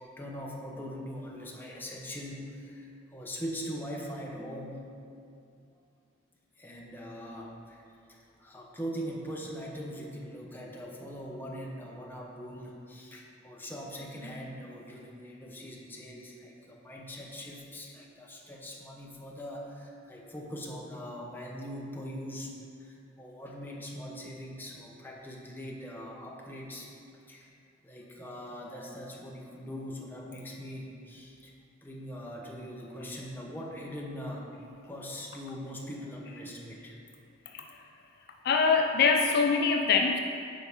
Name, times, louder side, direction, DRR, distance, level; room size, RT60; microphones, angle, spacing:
voice 1, 0.0-4.9 6.6-7.8 8.1-26.9 27.3-27.5 27.8-31.5 31.8-34.5 34.9-37.0, equal, 10° left, -2 dB, 0.8 m, -41 dB
voice 2, 38.4-40.2, left 5 dB, 50° left, 3 dB, 0.4 m, -23 dB
8.9 x 5.5 x 3.5 m, 2.4 s
head